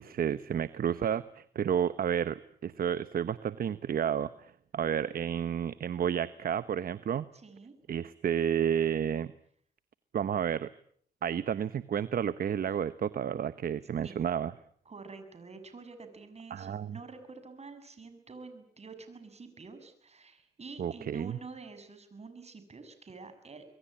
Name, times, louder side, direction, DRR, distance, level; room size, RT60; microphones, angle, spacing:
voice 1, 0.0-7.3 7.9-9.3 10.1-10.7 11.2-14.5 16.5-16.9 20.8-21.4, right 8 dB, 55° right, 14 dB, 1.0 m, -31 dB
voice 2, 7.3-7.8 14.0-14.2 14.9-23.7, right 4 dB, 35° right, 9 dB, 7.0 m, -48 dB
25.5 x 22.5 x 8.8 m, 0.64 s
cardioid pair, 80°, 18 cm